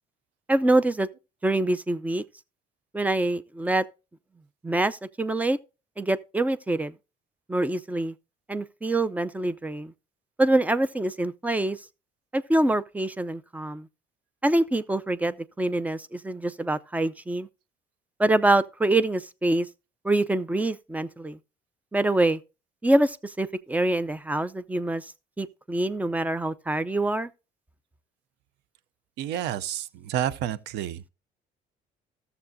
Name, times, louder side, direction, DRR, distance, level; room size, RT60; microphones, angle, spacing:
voice 1, 0.5-1.1 1.4-2.2 2.9-3.8 4.6-5.6 6.0-6.9 7.5-8.1 8.5-9.9 10.4-11.8 12.3-13.9 14.4-17.5 18.2-19.7 20.0-21.4 21.9-22.4 22.8-25.1 25.4-27.3, right 2 dB, 10° right, 0.5 m, -25 dB
voice 2, 29.2-31.0, right 11 dB, 85° right, 0.6 m, -30 dB
14.0 x 6.9 x 2.6 m
cardioid pair, 110°, 17 cm